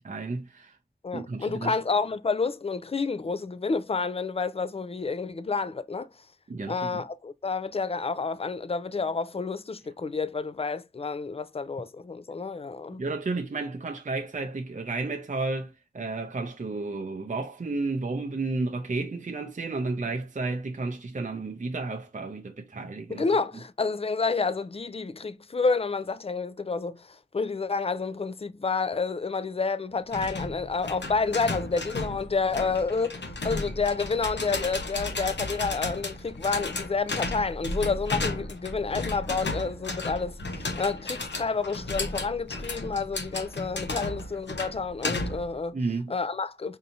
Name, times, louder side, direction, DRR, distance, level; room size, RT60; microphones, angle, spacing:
voice 1, 0.0-0.7 1.1-1.8 6.5-7.0 13.0-23.3 45.7-46.1, right 3 dB, 45° right, 0.5 m, -32 dB
voice 2, 1.0-6.1 6.7-13.0 23.1-27.1 27.3-45.8 46.1-46.8, left 4 dB, 35° left, 0.3 m, -29 dB
sound 1, 30.1-45.5, left 2 dB, 85° left, 0.8 m, -34 dB
4.6 x 2.7 x 2.6 m
wide cardioid pair, 65°, 18 cm